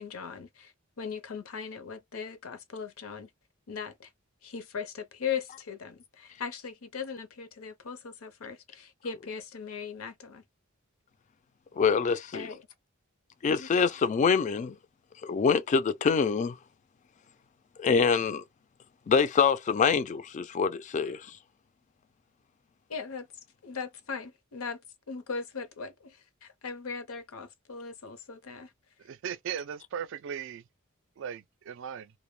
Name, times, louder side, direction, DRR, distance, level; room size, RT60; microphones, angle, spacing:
voice 1, 0.0-3.3 3.7-4.1 4.4-10.4 12.3-12.6 13.4-13.7 22.9-23.3 23.6-24.8 25.1-28.7, left 6 dB, 80° left, 0.6 m, -39 dB
voice 2, 11.8-12.5 13.4-14.8 15.2-16.6 17.8-18.4 19.1-21.3, left 5 dB, 35° left, 0.3 m, -25 dB
voice 3, 29.0-30.6 31.2-32.1, right 8 dB, 60° right, 0.3 m, -37 dB
2.1 x 2.1 x 3.1 m
head